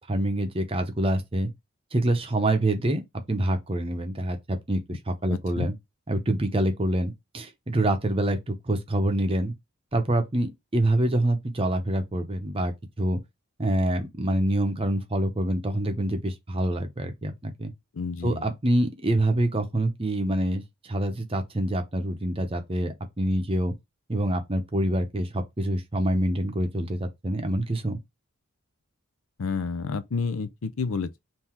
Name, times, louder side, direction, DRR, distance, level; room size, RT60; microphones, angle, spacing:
voice 1, 0.1-1.5 1.9-3.0 3.3-5.7 6.1-9.5 9.9-13.2 13.6-17.7 18.2-23.7 24.1-28.0, right 1 dB, 25° right, 0.7 m, -26 dB
voice 2, 5.3-5.7 18.0-18.5 29.4-31.2, left 5 dB, 70° left, 0.5 m, -30 dB
3.7 x 2.7 x 4.3 m
head